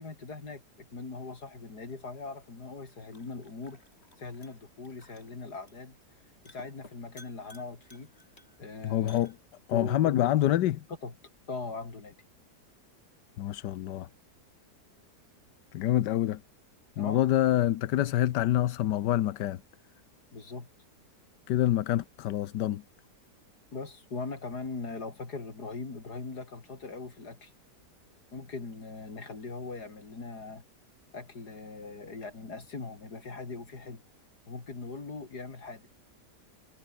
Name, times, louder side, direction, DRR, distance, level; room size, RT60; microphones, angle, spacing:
voice 1, 0.0-3.8 4.2-6.0 6.4-8.1 8.6-9.2 9.7-10.3 11.0-11.1 11.5-12.2 17.0-17.2 20.3-20.7 23.7-27.5 28.3-30.6 31.1-34.0 34.5-35.9, left 3 dB, 70° left, 4.2 m, -40 dB
sound 1, 1.8-9.8, left 2 dB, 35° left, 5.8 m, -59 dB
voice 2, 8.8-9.3 9.7-10.8 13.4-14.1 15.7-16.4 17.0-19.6 21.5-22.8, left 13 dB, 85° left, 1.4 m, -26 dB
omnidirectional pair, 1.8 m